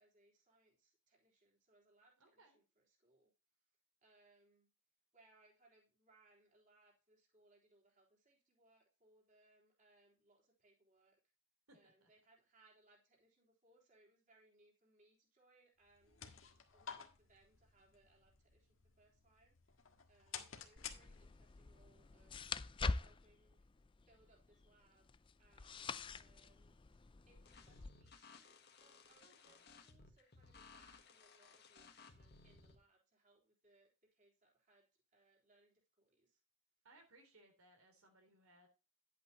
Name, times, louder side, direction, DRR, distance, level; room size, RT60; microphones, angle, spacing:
voice 1, 0.0-3.3 4.0-4.7 5.1-11.2 11.7-22.4 23.0-23.7 24.1-25.1 25.4-26.8 27.3-36.4, right 2 dB, 35° right, -2 dB, 3.6 m, -72 dB
voice 2, 2.2-2.6 11.7-12.1 29.2-29.6 36.8-38.7, right 1 dB, 85° right, 4 dB, 3.5 m, -67 dB
sound 1, 15.8-21.6, left 8 dB, 65° left, 1.6 m, -54 dB
sound 2, 20.8-27.9, left 3 dB, 25° left, 0.4 m, -45 dB
sound 3, 27.5-32.8, left 4 dB, 50° left, 1.6 m, -61 dB
11.0 x 8.5 x 2.9 m, 0.32 s
head